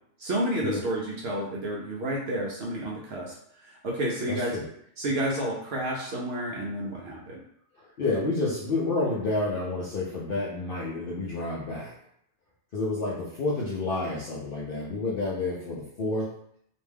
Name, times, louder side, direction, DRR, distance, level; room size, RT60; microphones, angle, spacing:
voice 1, 0.2-3.3 3.6-4.6 5.0-7.4, right 1 dB, 65° right, -3 dB, 0.7 m, -30 dB
voice 2, 4.3-4.6 7.8-11.9 12.7-16.3, left 2 dB, 65° left, -5 dB, 0.5 m, -29 dB
2.5 x 2.2 x 3.3 m, 0.70 s
omnidirectional pair, 1.4 m